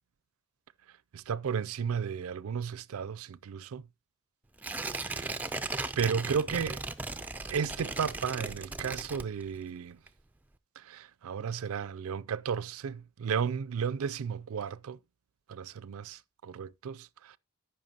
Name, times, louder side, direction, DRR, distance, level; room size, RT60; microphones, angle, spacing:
voice 1, 1.1-3.9 5.0-5.4 6.0-6.8 7.5-10.0 10.8-15.0 15.5-17.4, right 6 dB, 75° right, 0.4 m, -34 dB
Tearing, 4.6-9.7 10.1-10.2, right 3 dB, 5° right, 0.4 m, -37 dB
14.5 x 5.7 x 2.8 m
head